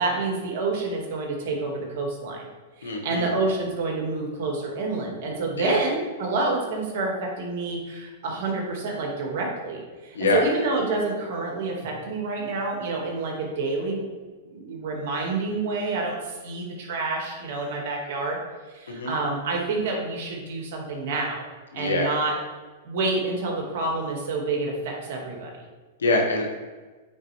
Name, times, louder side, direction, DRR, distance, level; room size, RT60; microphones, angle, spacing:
voice 1, 0.0-2.5 2.8-14.1 14.5-18.4 18.7-21.4 21.7-22.4 22.8-25.5, right 3 dB, 60° right, 0 dB, 2.0 m, -28 dB
voice 2, 2.8-3.3 5.6-5.8 10.1-10.5 18.9-19.1 21.7-22.1 26.0-26.6, left 2 dB, 85° left, 1 dB, 1.4 m, -24 dB
8.7 x 4.4 x 3.4 m, 1.3 s
hypercardioid pair, 110°, 0 cm